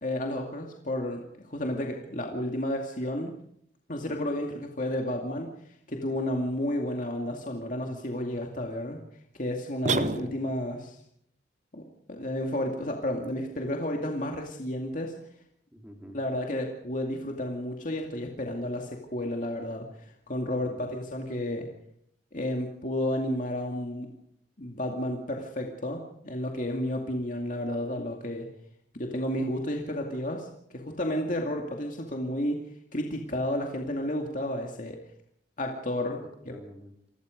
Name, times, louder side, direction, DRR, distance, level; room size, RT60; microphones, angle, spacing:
voice 1, 0.0-3.3 3.9-5.5 5.9-9.0 9.3-11.0 11.7-15.1 16.1-21.7 22.3-24.1 24.6-28.5 28.9-30.5 30.7-32.6 32.9-35.0 35.6-36.6, left 1 dB, 45° left, 1 dB, 2.4 m, -32 dB
sound 1, 9.8-10.8, right 3 dB, 40° right, 0.9 m, -29 dB
voice 2, 15.7-16.2 20.5-20.9 36.2-37.1, equal, 5° right, 2 dB, 3.9 m, -48 dB
28.0 x 20.0 x 5.2 m, 0.71 s
head